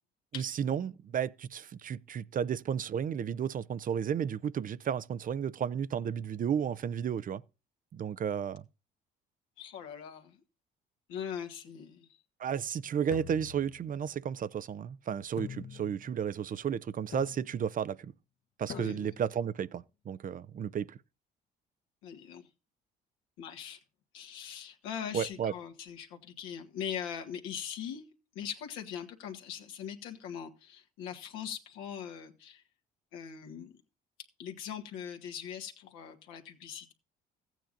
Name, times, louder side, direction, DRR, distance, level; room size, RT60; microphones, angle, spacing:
voice 1, 0.3-7.4 7.9-8.6 12.4-18.1 18.6-21.0 25.1-25.5, right 8 dB, 40° right, 0.5 m, -33 dB
voice 2, 9.6-10.4 11.1-12.2 18.7-19.1 22.0-22.5 23.4-23.8 24.1-28.1 28.3-32.6 33.1-33.7 34.4-36.9, left 8 dB, 85° left, 1.6 m, -41 dB
sound 1, 13.1-14.3 15.4-16.2 17.1-17.7 18.7-19.4, left 8 dB, 65° left, 1.1 m, -45 dB
15.0 x 9.1 x 2.5 m
supercardioid pair, 75°, 20 cm